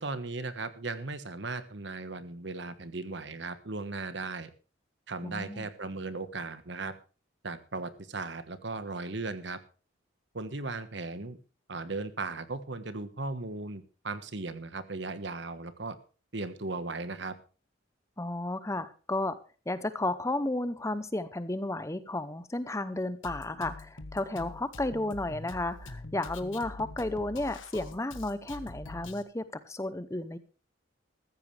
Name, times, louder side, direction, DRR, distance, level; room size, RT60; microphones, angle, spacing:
voice 1, 0.0-4.5 5.1-6.9 7.4-9.6 10.3-11.4 11.7-16.0 16.3-17.3, right 3 dB, 60° right, 12 dB, 1.3 m, -37 dB
voice 2, 5.2-5.7 18.2-19.4 19.7-30.4, left 2 dB, 15° left, 13 dB, 0.7 m, -33 dB
Drum kit, 23.2-29.2, left 2 dB, 80° left, 1.5 m, -44 dB
14.5 x 14.0 x 3.3 m, 0.35 s
head